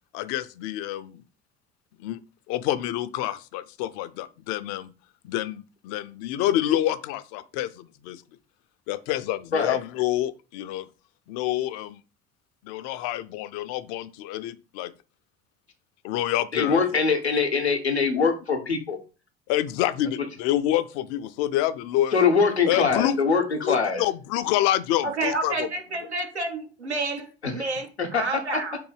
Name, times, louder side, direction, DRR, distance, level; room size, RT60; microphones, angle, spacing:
voice 1, 0.1-1.2 2.0-2.2 2.5-4.9 5.2-8.2 8.9-10.9 11.3-12.0 12.6-14.9 16.0-17.0 19.5-22.1 22.7-23.2 23.6-25.5, left 13 dB, 50° left, 0.4 m, -27 dB
voice 2, 16.5-19.0 22.1-24.0 28.0-28.2, left 5 dB, 90° left, 0.7 m, -23 dB
voice 3, 25.0-28.8, right 3 dB, 90° right, 0.7 m, -30 dB
3.8 x 2.6 x 4.6 m
figure-of-eight pair, 60°, 32 cm